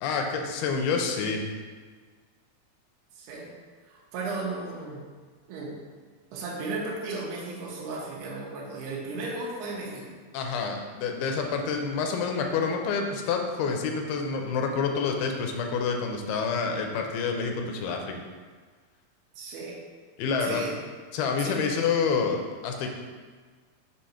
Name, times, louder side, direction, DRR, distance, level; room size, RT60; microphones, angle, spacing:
voice 1, 0.0-1.4 10.3-18.1 20.2-20.6 21.1-22.9, left 5 dB, 80° left, 3 dB, 2.4 m, -28 dB
voice 2, 3.2-3.5 3.9-5.0 5.5-5.8 6.3-10.1 19.4-19.8 20.4-20.8 21.4-21.6, right 3 dB, 85° right, -5 dB, 3.0 m, -35 dB
6.9 x 2.9 x 5.6 m, 1.5 s
omnidirectional pair, 4.5 m